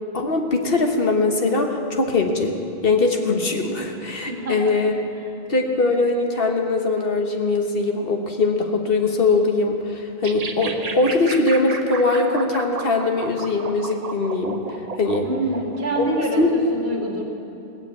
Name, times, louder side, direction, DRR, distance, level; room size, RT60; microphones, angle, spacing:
voice 1, 0.1-2.5 2.8-5.0 5.5-14.6 15.0-15.3 16.0-16.1 16.4-16.5, left 3 dB, 65° left, 3 dB, 1.5 m, -21 dB
voice 2, 4.3-4.7 15.2-17.2, right 1 dB, 75° right, 0 dB, 2.2 m, -26 dB
sound 1, 10.2-16.5, right 4 dB, 40° right, 0.9 m, -33 dB
18.0 x 7.0 x 8.5 m, 2.9 s
omnidirectional pair, 1.0 m